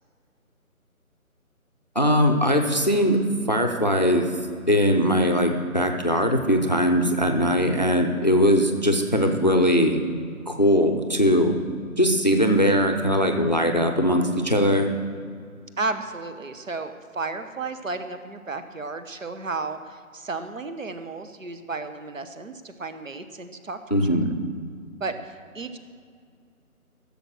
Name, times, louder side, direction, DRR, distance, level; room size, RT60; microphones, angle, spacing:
voice 1, 2.0-3.2 3.5-4.3 4.7-10.0 10.5-11.6 12.0-14.9 23.9-24.3, equal, 30° left, 4 dB, 0.6 m, -20 dB
voice 2, 15.8-24.0 25.0-25.8, right 3 dB, 65° right, 9 dB, 1.1 m, -33 dB
15.5 x 7.0 x 6.3 m, 2.2 s
figure-of-eight pair, 155°, 43 cm